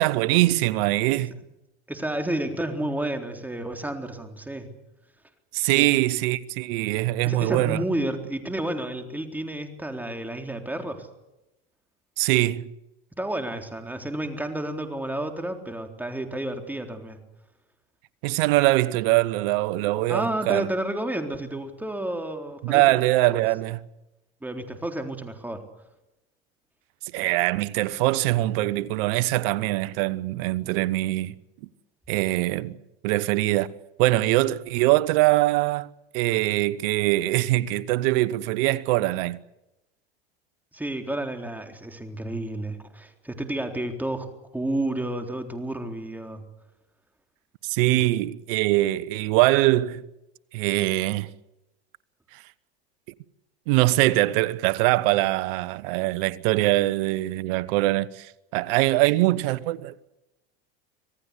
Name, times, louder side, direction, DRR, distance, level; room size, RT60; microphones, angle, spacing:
voice 1, 0.0-1.3 5.5-7.8 12.2-12.7 18.2-20.7 22.6-23.8 27.1-31.4 32.1-32.8 33.0-33.7 34.0-39.4 47.6-50.0 50.5-51.3 52.3-52.4 53.7-60.1, right 18 dB, 65° right, 1.2 m, -23 dB
voice 2, 1.9-4.7 5.7-5.9 7.2-11.1 13.1-17.2 20.1-23.0 24.4-25.6 40.7-46.5 47.9-48.1, right 1 dB, 5° right, 3.7 m, -31 dB
26.0 x 18.0 x 8.3 m
hypercardioid pair, 100°, 30 cm